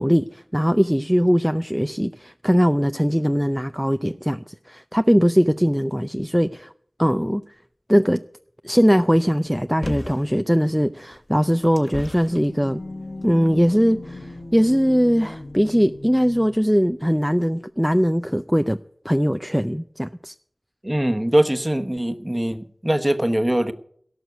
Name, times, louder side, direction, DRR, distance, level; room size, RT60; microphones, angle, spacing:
voice 1, 0.0-6.7 7.0-7.4 7.9-8.2 8.6-12.8 13.2-18.8 19.0-20.3, equal, ahead, 0.5 m, -20 dB
sound 1, 9.8-10.3 11.1-12.4 13.2-13.3, left 1 dB, 50° left, 2.4 m, -33 dB
sound 2, 11.9-16.6, left 2 dB, 85° left, 3.3 m, -38 dB
voice 2, 20.8-23.7, right 1 dB, 20° right, 1.1 m, -22 dB
17.5 x 6.4 x 8.1 m
wide cardioid pair, 50°, 0 cm